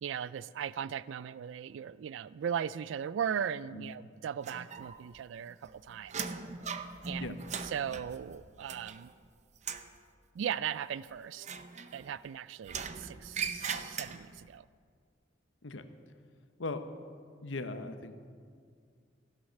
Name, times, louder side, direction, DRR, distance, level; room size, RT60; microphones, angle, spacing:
voice 1, 0.0-6.3 7.1-7.4 7.6-9.1 10.3-11.5 11.9-14.7, right 8 dB, 75° right, 18 dB, 0.3 m, -38 dB
sound 1, 4.4-5.2 5.5-9.2 9.5-10.0 11.4-12.3 12.6-14.5, right 6 dB, 40° right, 0.7 m, -40 dB
voice 2, 17.4-18.1, left 3 dB, 85° left, 9 dB, 1.0 m, -38 dB
15.5 x 11.5 x 6.5 m, 2.1 s
head